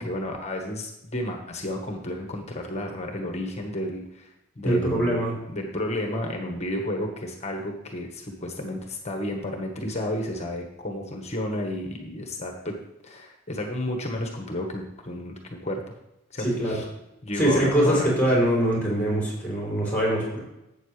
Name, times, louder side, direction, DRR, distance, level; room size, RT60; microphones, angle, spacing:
voice 1, 0.0-4.3 4.6-12.7 13.0-15.9 16.3-16.9 17.2-18.1, left 1 dB, 30° left, 2 dB, 1.3 m, -32 dB
voice 2, 4.6-5.3 16.4-16.8 17.4-20.4, right 1 dB, 10° left, -4 dB, 3.6 m, -23 dB
12.0 x 8.5 x 3.3 m, 0.88 s
head